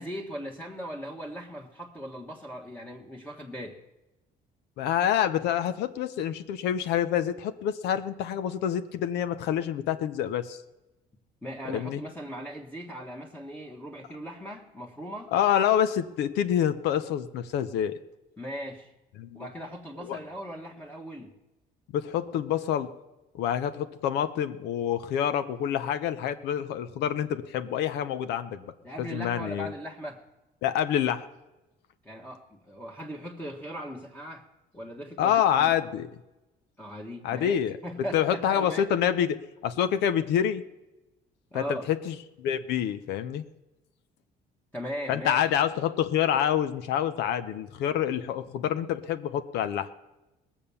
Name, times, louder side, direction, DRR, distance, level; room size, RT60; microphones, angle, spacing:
voice 1, 0.0-3.8 11.4-15.3 18.4-18.9 19.3-21.3 28.8-30.2 32.0-34.5 34.7-35.8 36.8-37.6 37.8-38.9 41.5-41.9 44.7-45.4, equal, 10° left, -1 dB, 1.4 m, -39 dB
voice 2, 4.8-10.6 11.7-12.0 15.3-18.0 19.2-19.5 20.1-20.2 21.9-22.9 23.3-28.7 29.0-29.7 30.6-31.3 35.2-36.1 37.2-37.8 38.1-40.6 41.5-43.4 45.1-49.9, left 9 dB, 85° left, 10 dB, 0.8 m, -27 dB
19.0 x 7.2 x 7.0 m, 1.0 s
cardioid pair, 110°, 17 cm